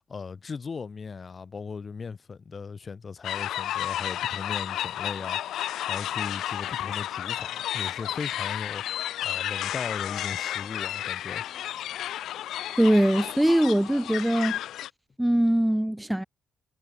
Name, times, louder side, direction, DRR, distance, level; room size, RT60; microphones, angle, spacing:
voice 1, 0.0-11.5, left 5 dB, 30° left, 2.0 m, -38 dB
sound 1, 3.2-14.9, left 12 dB, 75° left, 1.8 m, -32 dB
voice 2, 12.8-14.6 15.2-16.2, right 1 dB, 5° right, 0.7 m, -22 dB
cardioid pair, 140°, 0 cm